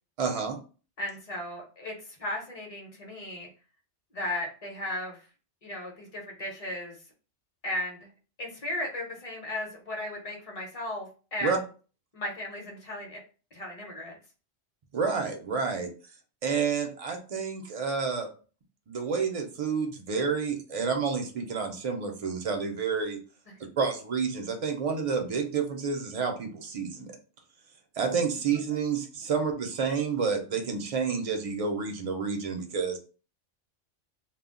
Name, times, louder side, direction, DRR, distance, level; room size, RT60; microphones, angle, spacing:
voice 1, 0.2-0.6 11.4-11.6 14.9-15.9 16.4-18.3 18.9-23.2 23.8-27.1 28.0-33.0, right 5 dB, 50° right, 3 dB, 0.4 m, -29 dB
voice 2, 1.0-3.5 4.1-5.3 5.6-7.0 7.6-8.1 8.4-11.6 12.1-13.2 13.5-14.2 23.5-23.6 28.4-28.6, left 1 dB, 35° left, 0 dB, 0.7 m, -36 dB
2.2 x 2.1 x 3.6 m, 0.37 s
omnidirectional pair, 1.2 m